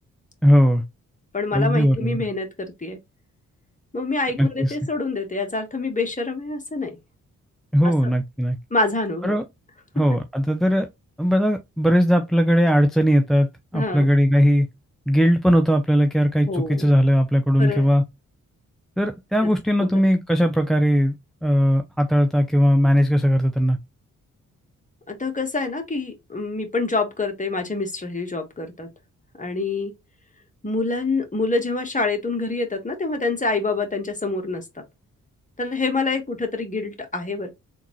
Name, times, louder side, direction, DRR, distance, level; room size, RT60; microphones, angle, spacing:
voice 1, 0.4-0.8 1.5-2.2 4.4-4.8 7.7-8.6 9.2-9.4 10.0-10.9 11.2-14.7 15.1-18.0 19.0-21.1 21.4-23.8, equal, ahead, 0.4 m, -19 dB
voice 2, 1.3-3.0 3.9-7.0 7.8-7.9 8.7-9.4 13.7-14.1 16.5-16.9 17.6-17.9 19.4-19.5 25.1-28.9 29.4-29.9 30.6-34.8 35.6-37.5, left 3 dB, 20° left, 1.3 m, -26 dB
3.6 x 2.7 x 3.0 m
supercardioid pair, 45°, 34 cm